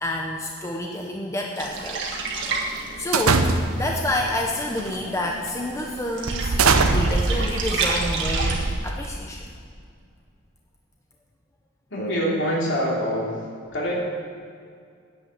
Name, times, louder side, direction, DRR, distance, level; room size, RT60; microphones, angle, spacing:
voice 1, 0.0-2.0 3.0-6.6 6.9-9.5, left 1 dB, 15° left, 0 dB, 0.7 m, -29 dB
sound 1, 1.6-8.7, right 4 dB, 55° right, 1.7 m, -31 dB
sound 2, 3.1-4.0 4.8-5.0 5.5-5.6 6.3-9.2, right 3 dB, 80° right, 0.8 m, -22 dB
voice 2, 11.9-13.3 13.7-13.9, equal, 60° left, -4 dB, 3.1 m, -24 dB
10.0 x 8.1 x 8.6 m, 2.2 s
head